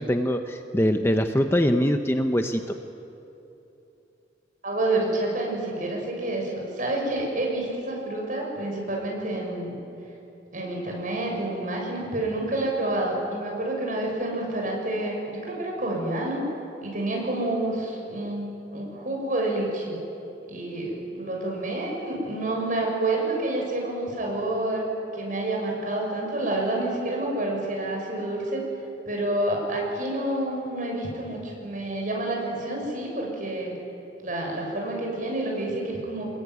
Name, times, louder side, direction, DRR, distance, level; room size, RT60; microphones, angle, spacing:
voice 1, 0.0-2.8, equal, 15° left, 6 dB, 0.8 m, -23 dB
voice 2, 4.6-9.8 10.5-16.4 16.8-20.0 20.5-24.9 25.1-28.6 29.0-33.7 34.2-36.3, right 1 dB, 45° right, -1 dB, 7.0 m, -28 dB
26.0 x 21.5 x 9.6 m, 2.8 s
head